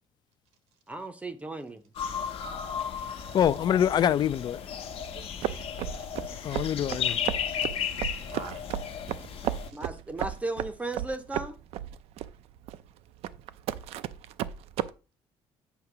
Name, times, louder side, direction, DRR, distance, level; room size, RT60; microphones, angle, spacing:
voice 1, 0.9-1.8 9.7-11.5, right 2 dB, 10° right, 0.6 m, -35 dB
sound 1, 2.0-9.7, left 8 dB, 60° left, 1.0 m, -34 dB
voice 2, 3.3-4.6 6.4-7.2, left 9 dB, 40° left, 0.4 m, -25 dB
voice 3, 5.1-5.6 5.9-6.5 7.6-8.7 9.7-9.8, right 5 dB, 90° right, 1.4 m, -48 dB
sound 2, 5.4-14.9, right 11 dB, 70° right, 0.4 m, -34 dB
8.1 x 2.9 x 6.0 m
cardioid pair, 135°, 11 cm